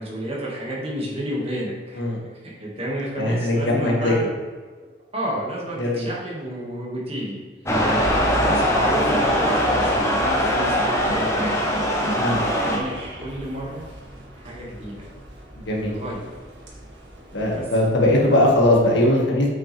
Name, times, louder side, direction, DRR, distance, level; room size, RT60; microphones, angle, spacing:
voice 1, 0.0-2.0 2.4-4.2 5.1-7.4 8.1-11.7 12.3-13.8 14.3-15.1 15.8-16.3 17.5-17.7 18.2-18.3, right 1 dB, 30° right, -5 dB, 2.0 m, -31 dB
voice 2, 3.2-4.1 5.8-6.1 7.8-8.1 12.2-12.4 15.6-16.0 17.3-19.5, left 1 dB, 75° left, -2 dB, 1.8 m, -20 dB
sound 1, 7.6-12.8, equal, 15° left, 1.0 m, -21 dB
Car / Alarm, 7.6-18.8, equal, 85° right, 1.8 m, -37 dB
8.5 x 6.1 x 3.5 m, 1.4 s
head